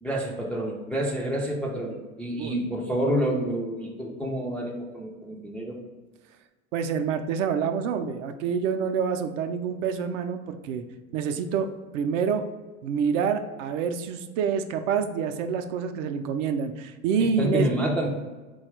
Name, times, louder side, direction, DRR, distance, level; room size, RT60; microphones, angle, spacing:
voice 1, 0.0-5.8 17.2-18.1, equal, 5° left, -3 dB, 0.3 m, -28 dB
voice 2, 6.7-10.8 11.1-11.7 11.9-12.4 12.8-17.7, right 6 dB, 60° right, 7 dB, 0.5 m, -27 dB
4.0 x 2.3 x 4.4 m, 1.3 s
hypercardioid pair, 85°, 42 cm